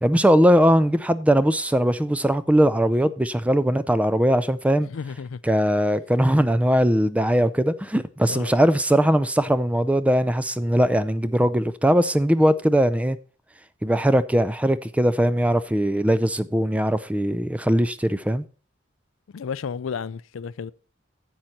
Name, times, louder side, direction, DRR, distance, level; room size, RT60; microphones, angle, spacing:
voice 1, 0.0-4.9 5.4-13.2 13.8-18.4, equal, 5° right, 0.4 m, -20 dB
voice 2, 4.9-5.4 8.3-8.5 19.3-20.7, left 6 dB, 80° left, 0.4 m, -32 dB
10.5 x 7.8 x 4.2 m
head